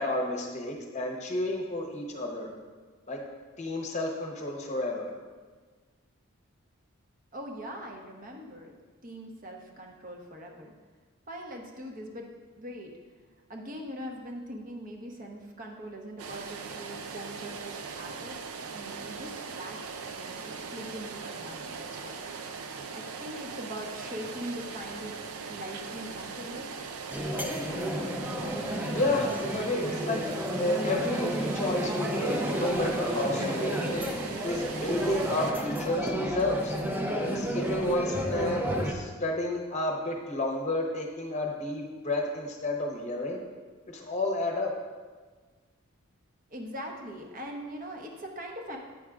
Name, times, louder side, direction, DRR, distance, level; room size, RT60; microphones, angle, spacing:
voice 1, 0.0-2.5 3.1-3.2 3.6-5.1 28.9-30.2 30.6-34.0 34.4-36.7 37.2-43.4 43.9-44.7, left 1 dB, 30° left, 1 dB, 0.8 m, -31 dB
voice 2, 7.3-8.7 9.0-10.7 11.3-12.2 12.5-12.9 13.5-18.4 18.7-19.8 20.0-22.6 22.9-26.7 46.5-48.8, equal, 40° right, 1 dB, 0.8 m, -41 dB
sound 1, 16.2-35.5, right 5 dB, 85° right, 0.5 m, -40 dB
sound 2, 27.1-38.9, equal, 10° right, 0.5 m, -31 dB
9.2 x 6.3 x 2.4 m, 1.4 s
head